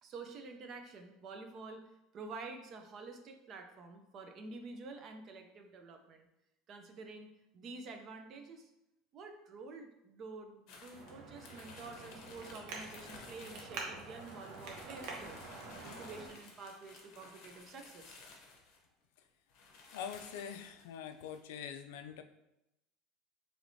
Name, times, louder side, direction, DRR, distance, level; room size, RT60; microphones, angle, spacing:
voice 1, 0.0-1.8 2.1-6.3 6.7-8.7 9.1-15.5 15.8-18.2, right 3 dB, 30° right, 5 dB, 0.4 m, -49 dB
sound 1, 10.7-18.9 19.2-19.3 19.5-21.4, left 3 dB, 50° left, 0.7 m, -56 dB
Traffic noise roadway noise, 10.9-16.3, right 3 dB, 50° right, 0.8 m, -47 dB
voice 2, 19.9-22.2, left 8 dB, 85° left, 8 dB, 0.3 m, -44 dB
4.5 x 3.0 x 2.6 m, 0.88 s
cardioid pair, 180°, 0 cm